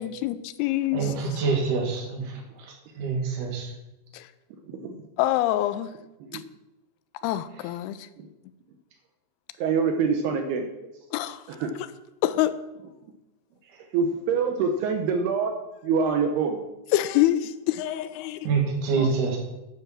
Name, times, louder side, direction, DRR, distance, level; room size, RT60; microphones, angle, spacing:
voice 1, 0.0-1.4 4.1-4.3 5.2-5.9 6.3-6.4 7.2-8.1 11.1-11.4 12.2-12.5 16.9-18.5 19.0-19.1, left 14 dB, 80° left, 2.5 m, -26 dB
voice 2, 0.9-2.2 3.0-3.7 18.5-19.4, right 5 dB, 55° right, 3.5 m, -25 dB
voice 3, 9.6-10.6 11.5-11.7 13.9-15.5 15.8-16.6, right 5 dB, 75° right, 2.8 m, -25 dB
9.6 x 8.5 x 6.0 m
omnidirectional pair, 4.8 m